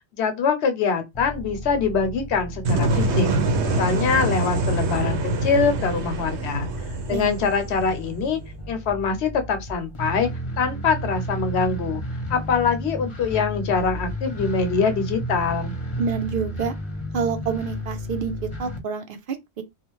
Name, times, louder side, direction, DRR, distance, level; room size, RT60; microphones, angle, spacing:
voice 1, 0.1-3.3 3.6-6.7 7.1-8.4 8.7-10.3 10.6-12.0 12.3-15.7, left 5 dB, 80° left, 0.9 m, -24 dB
sound 1, 1.1-18.8, equal, 35° left, 0.6 m, -33 dB
sound 2, 2.6-8.5, right 2 dB, 80° right, 0.9 m, -25 dB
voice 2, 16.0-16.7 17.1-19.6, right 6 dB, 60° right, 0.7 m, -28 dB
2.4 x 2.4 x 3.0 m
omnidirectional pair, 1.1 m